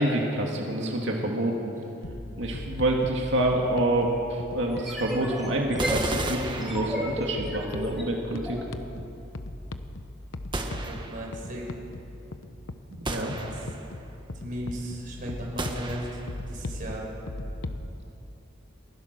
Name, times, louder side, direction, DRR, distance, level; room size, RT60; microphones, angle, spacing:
voice 1, 0.0-1.7 2.4-8.6 12.9-13.3, right 1 dB, 60° right, 0 dB, 2.4 m, -27 dB
sound 1, 2.0-17.9, left 1 dB, 75° left, 1.0 m, -39 dB
sound 2, 4.7-8.6, equal, ahead, 3.2 m, -34 dB
sound 3, 5.8-7.4 10.5-11.4 13.1-14.0 15.6-16.4, right 2 dB, 25° right, 1.4 m, -34 dB
voice 2, 10.6-11.7 13.3-13.7 14.3-16.2 16.5-17.1, equal, 45° right, -2 dB, 5.7 m, -36 dB
29.5 x 15.5 x 6.8 m, 2.8 s
head